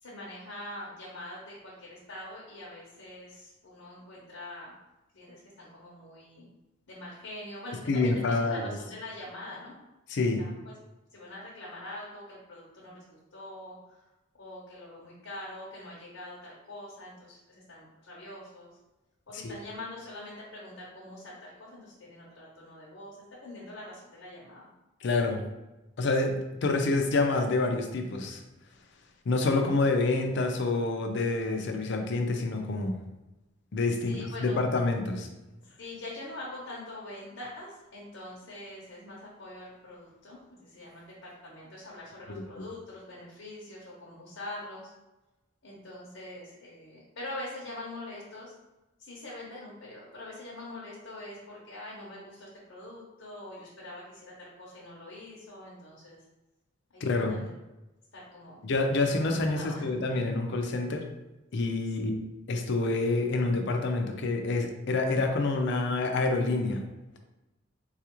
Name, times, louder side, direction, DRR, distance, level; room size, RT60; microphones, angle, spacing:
voice 1, 0.0-4.7 5.1-6.5 6.9-9.8 10.4-10.7 11.1-14.0 14.4-18.7 19.3-24.7 34.0-34.6 35.8-44.9 45.6-48.5 49.0-56.2 56.9-57.5 58.1-58.6 59.0-59.9 62.0-62.1, left 1 dB, 80° left, -5 dB, 0.8 m, -44 dB
voice 2, 7.9-8.7 10.1-10.4 19.4-19.5 25.0-25.4 26.0-28.4 29.3-33.0 33.7-35.3 42.3-42.4 57.0-57.4 58.6-61.0 61.5-62.2 62.5-66.8, left 3 dB, 60° left, 4 dB, 0.5 m, -27 dB
3.9 x 2.4 x 3.0 m, 1.0 s
head